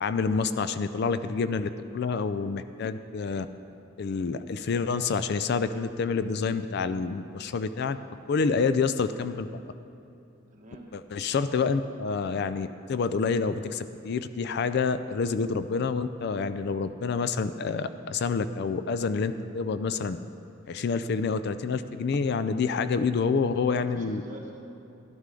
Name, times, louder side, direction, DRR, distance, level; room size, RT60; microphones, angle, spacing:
voice 1, 0.0-3.5 4.0-8.0 8.3-9.5 10.9-20.2 20.7-24.2, left 5 dB, 55° left, 12 dB, 0.4 m, -28 dB
voice 2, 10.5-10.9 23.7-24.7, right 2 dB, 40° right, -1 dB, 1.4 m, -46 dB
12.0 x 11.5 x 3.8 m, 2.8 s
head